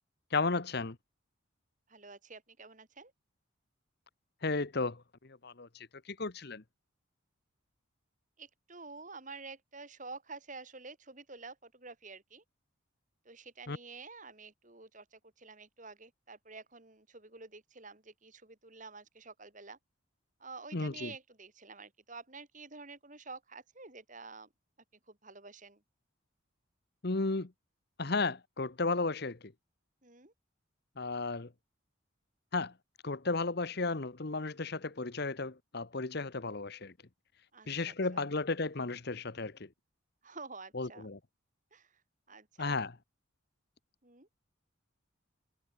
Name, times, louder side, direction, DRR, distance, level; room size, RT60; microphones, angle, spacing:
voice 1, 0.3-1.0 4.4-5.0 5.3-6.6 13.7-13.8 20.7-21.1 27.0-27.5 28.0-29.4 31.0-31.5 32.5-32.7 33.0-36.9 37.7-39.7 40.7-41.2 42.6-42.9, left 3 dB, 50° left, 1.0 m, -34 dB
voice 2, 1.9-3.1 8.4-12.4 13.2-19.8 20.4-24.5 25.1-25.8 30.0-30.3 37.5-38.3 40.2-41.1 41.7-41.9 42.3-42.8 44.0-44.3, right 4 dB, 35° right, 2.8 m, -49 dB
head